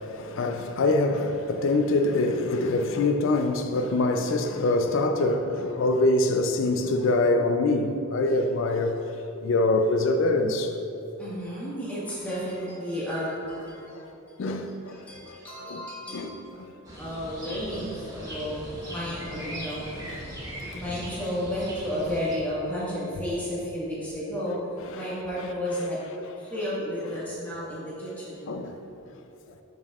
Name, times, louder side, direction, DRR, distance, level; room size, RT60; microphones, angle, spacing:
voice 1, 0.0-9.1 9.4-10.8 14.4-15.4 15.7-16.7 18.2-18.4 20.9-21.0 24.9-25.2 25.8-25.9 26.2-26.3 28.5-28.8, left 2 dB, 60° left, 0.4 m, -25 dB
voice 2, 11.2-14.4 14.9-16.3 17.0-19.8 20.7-24.6 24.9-26.0 26.4-28.5, equal, 5° left, 1.5 m, -32 dB
sound 1, 16.8-22.4, equal, 15° right, 1.1 m, -39 dB
12.0 x 5.2 x 2.4 m
head